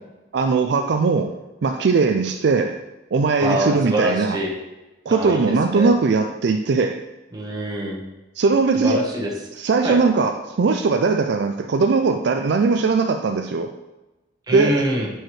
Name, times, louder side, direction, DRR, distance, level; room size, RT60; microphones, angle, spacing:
voice 1, 0.3-1.4 1.6-2.8 3.1-4.4 5.1-7.0 8.4-9.0 9.6-13.7 14.5-14.8, right 4 dB, 65° right, 6 dB, 0.4 m, -19 dB
voice 2, 3.4-4.5 5.1-5.9 7.3-8.0 8.7-9.3 9.8-10.0 14.5-15.1, equal, 20° right, -1 dB, 1.3 m, -24 dB
10.0 x 4.7 x 3.2 m, 1.1 s
head